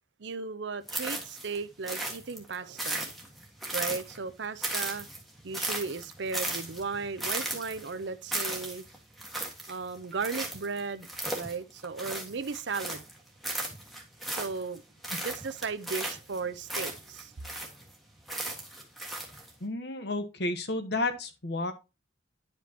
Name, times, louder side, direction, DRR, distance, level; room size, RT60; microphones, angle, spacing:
voice 1, 0.2-3.1 3.7-5.1 5.4-8.8 9.7-11.1 11.3-13.0 14.3-14.8 15.2-17.3, right 4 dB, 65° right, 0.6 m, -36 dB
sound 1, 0.9-1.6 1.9-4.3 4.6-13.1 13.4-14.8 15.0-17.9 18.3-19.5, right 1 dB, ahead, 1.5 m, -36 dB
voice 2, 19.6-21.7, left 2 dB, 60° left, 1.1 m, -31 dB
10.5 x 5.2 x 2.8 m
head